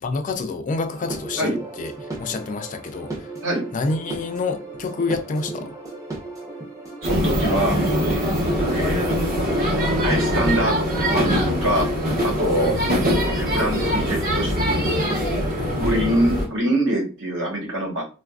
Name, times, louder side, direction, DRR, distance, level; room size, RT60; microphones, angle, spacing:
voice 1, 0.0-1.9 2.2-3.3 3.7-5.7 12.5-13.0 15.6-16.0, left 3 dB, 40° left, 0.4 m, -28 dB
sound 1, 0.9-16.0, right 3 dB, 15° right, 0.7 m, -35 dB
sound 2, 7.0-16.5, equal, 45° right, 1.0 m, -22 dB
voice 2, 7.0-7.8 8.7-9.1 10.0-11.9 12.2-12.8 13.3-14.8 15.8-18.0, right 1 dB, 65° right, 1.2 m, -24 dB
3.9 x 2.4 x 2.3 m
head